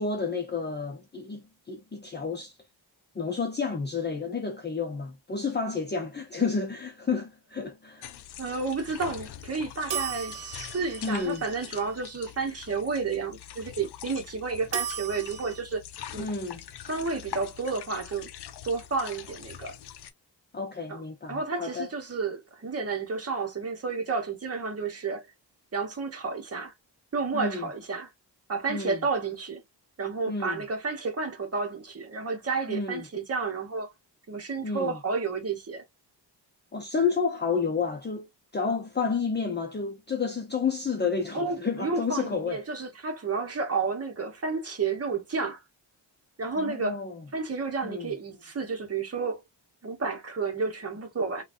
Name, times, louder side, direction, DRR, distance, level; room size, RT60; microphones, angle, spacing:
voice 1, 0.0-2.6 3.1-8.1 11.0-11.4 16.2-16.6 20.5-21.9 27.3-27.7 28.7-29.0 30.3-30.6 32.7-33.1 34.6-35.0 36.7-38.3 38.5-42.6 46.6-47.2 47.8-48.1, left 5 dB, 25° left, 0.6 m, -30 dB
sound 1, 8.0-20.1, left 10 dB, 65° left, 0.6 m, -44 dB
voice 2, 8.4-15.8 16.1-16.3 16.9-18.3 18.6-19.7 20.9-21.0 21.3-25.2 25.7-26.7 27.1-28.1 28.5-29.6 30.0-33.9 34.3-35.8 41.3-45.6 46.4-47.0 47.3-49.4 49.8-51.4, right 4 dB, 35° right, 1.0 m, -31 dB
sound 2, 9.9-12.1 14.7-15.6, right 7 dB, 60° right, 1.0 m, -36 dB
3.8 x 2.3 x 2.5 m
wide cardioid pair, 135°, 43 cm